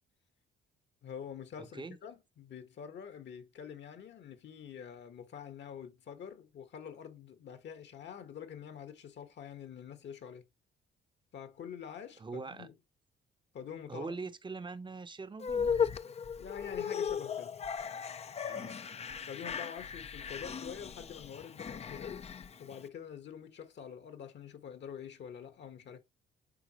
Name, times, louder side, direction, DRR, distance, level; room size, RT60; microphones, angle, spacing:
voice 1, 1.0-10.4 11.3-12.7 13.5-14.1 16.4-17.5 19.3-22.2 22.6-26.0, left 8 dB, 60° left, 1.4 m, -46 dB
voice 2, 1.6-2.0 12.2-12.7 13.9-15.8 18.4-18.8, right 4 dB, 25° right, 0.8 m, -42 dB
sound 1, 15.4-22.8, left 7 dB, 30° left, 0.5 m, -36 dB
9.2 x 3.6 x 3.0 m
cardioid pair, 90°, 20 cm